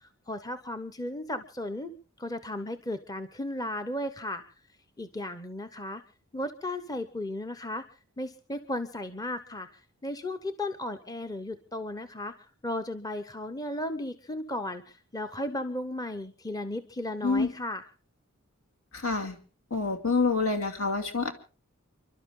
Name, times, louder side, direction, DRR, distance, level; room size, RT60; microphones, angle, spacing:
voice 1, 0.0-1.9 2.2-4.4 5.0-6.0 6.3-7.8 8.2-12.3 12.6-17.9, left 1 dB, 15° left, 9 dB, 0.9 m, -35 dB
voice 2, 18.9-19.4 19.7-21.3, left 4 dB, 70° left, 4 dB, 2.7 m, -27 dB
30.0 x 12.0 x 3.8 m, 0.39 s
head